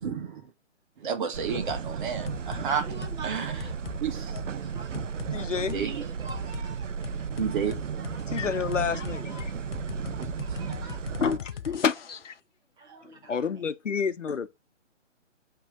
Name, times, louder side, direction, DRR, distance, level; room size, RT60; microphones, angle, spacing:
voice 1, 0.0-0.5 1.0-2.8 3.2-3.6 4.0-4.5 5.6-6.1 7.4-7.9, right 6 dB, 40° right, 1.5 m, -31 dB
sound 1, 1.3-11.4, right 6 dB, 80° right, 0.6 m, -34 dB
sound 2, 1.7-1.9 2.3-2.7 3.0-3.2 3.6-4.0 4.4-4.5 4.9-5.3 5.7-5.8 6.3-6.7 7.0-12.3, left 8 dB, 50° left, 0.5 m, -39 dB
voice 2, 2.6-3.9 4.4-5.0 5.4-6.9 8.0-9.6 10.2-11.2 11.5-11.8 12.8-13.7, right 3 dB, 10° right, 1.2 m, -47 dB
voice 3, 5.3-5.8 8.3-9.5 11.2-12.3 13.3-14.5, left 6 dB, 75° left, 0.9 m, -29 dB
6.1 x 3.3 x 5.0 m
figure-of-eight pair, 140°, 37 cm